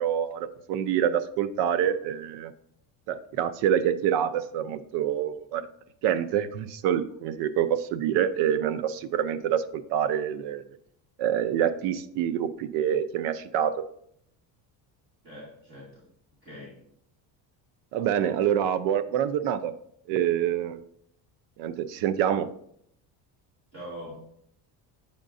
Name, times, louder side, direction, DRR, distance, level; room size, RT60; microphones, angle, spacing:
voice 1, 0.0-2.5 3.1-5.6 6.0-10.6 11.2-13.8 17.9-19.7 20.1-20.8 21.6-22.5, right 9 dB, 85° right, 13 dB, 0.6 m, -26 dB
voice 2, 15.2-16.0 16.4-16.8 23.7-24.1, equal, 35° right, -8 dB, 2.5 m, -42 dB
8.1 x 5.2 x 2.6 m, 0.70 s
cardioid pair, 160°, 40 cm